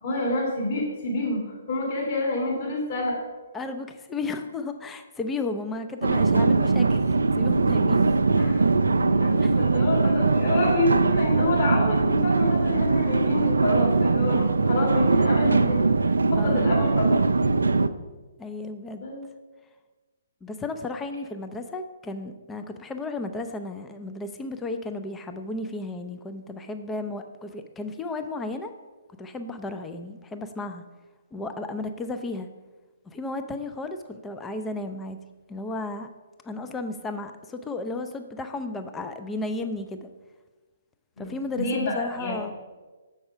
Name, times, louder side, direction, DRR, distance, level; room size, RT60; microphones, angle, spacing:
voice 1, 0.0-3.2 8.4-8.7 8.9-17.2 19.0-19.2 41.2-42.4, left 2 dB, 40° left, -3 dB, 2.0 m, -28 dB
voice 2, 3.5-7.1 7.4-8.0 9.4-9.6 16.3-16.7 18.4-19.1 20.4-28.7 29.2-30.8 31.3-32.5 33.1-35.2 35.5-36.1 36.4-40.1 41.2-42.5, left 2 dB, 10° left, 7 dB, 0.4 m, -34 dB
sound 1, 6.0-17.9, right 3 dB, 80° right, 0.3 m, -21 dB
6.9 x 5.4 x 4.9 m, 1.3 s
figure-of-eight pair, 130°, 0 cm